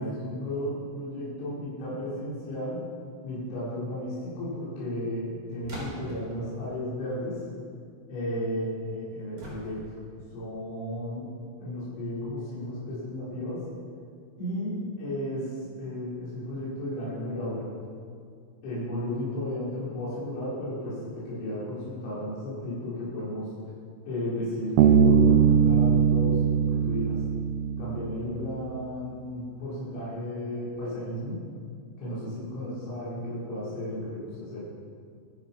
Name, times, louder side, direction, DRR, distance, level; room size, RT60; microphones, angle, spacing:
voice 1, 0.0-2.8 3.2-7.4 8.1-10.0 10.3-11.3 11.6-13.6 14.4-17.7 18.6-23.5 24.1-27.2 27.8-31.4 32.0-34.6, left 1 dB, 65° left, -9 dB, 7.0 m, -34 dB
sound 1, 5.6-6.3 9.4-10.1, right 1 dB, 30° right, 3.8 m, -41 dB
Bass guitar, 24.8-28.3, right 7 dB, 85° right, 3.7 m, -21 dB
23.5 x 10.5 x 5.7 m, 2.2 s
omnidirectional pair, 5.9 m